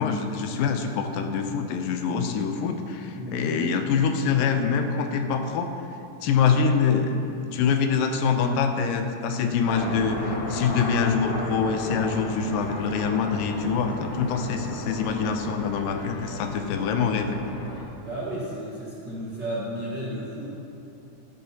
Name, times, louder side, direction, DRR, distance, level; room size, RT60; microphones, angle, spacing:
voice 1, 0.0-5.7 6.2-7.2 7.4-17.4, left 6 dB, 85° left, 6 dB, 2.3 m, -25 dB
voice 2, 3.1-3.6 18.0-20.5, right 1 dB, 45° right, -8 dB, 1.5 m, -33 dB
sound 1, 9.6-17.8, left 1 dB, 55° left, 2.1 m, -34 dB
12.0 x 12.0 x 2.8 m, 2.7 s
omnidirectional pair, 4.0 m